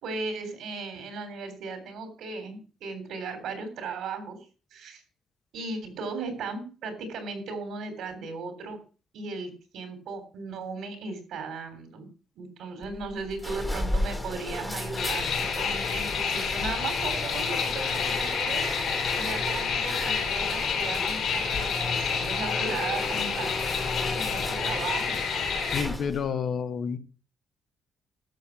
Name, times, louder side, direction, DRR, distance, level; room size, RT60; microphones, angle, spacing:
voice 1, 0.0-4.4 4.7-5.0 5.5-8.8 9.1-12.1 12.4-18.7 19.2-23.5 24.1-25.2, right 4 dB, 75° right, 7 dB, 3.5 m, -36 dB
sound 1, 12.8-26.3, left 1 dB, 5° left, 1.5 m, -35 dB
sound 2, 15.0-25.8, left 6 dB, 65° left, 3.8 m, -29 dB
voice 2, 25.7-27.0, left 6 dB, 45° left, 9 dB, 1.1 m, -29 dB
12.0 x 7.0 x 6.0 m, 0.37 s
cardioid pair, 155°, 0 cm